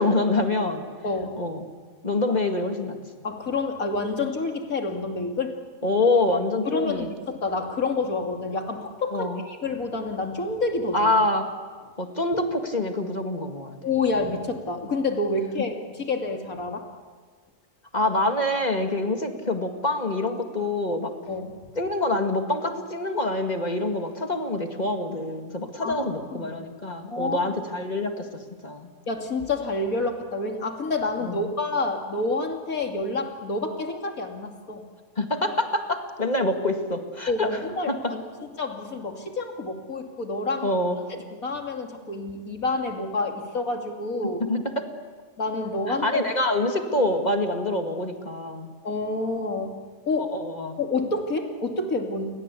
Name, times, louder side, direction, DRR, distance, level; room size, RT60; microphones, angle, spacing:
voice 1, 0.0-0.9 1.4-1.6 2.0-3.0 5.8-7.1 9.1-9.4 10.9-11.5 12.0-13.8 17.9-21.1 21.8-28.9 31.2-31.5 35.2-37.5 37.9-38.2 40.6-41.1 44.2-44.9 45.9-48.7 50.2-50.8, left 2 dB, 30° left, 5 dB, 2.2 m, -26 dB
voice 2, 3.2-5.6 6.6-11.1 13.8-16.8 21.3-21.5 25.8-26.5 27.1-27.5 29.1-34.8 37.3-38.2 38.6-40.8 41.1-44.4 45.4-46.1 48.8-49.8 50.1-50.3 50.8-52.4, left 3 dB, 85° left, 4 dB, 3.1 m, -28 dB
29.5 x 22.0 x 8.4 m, 1.5 s
omnidirectional pair, 1.4 m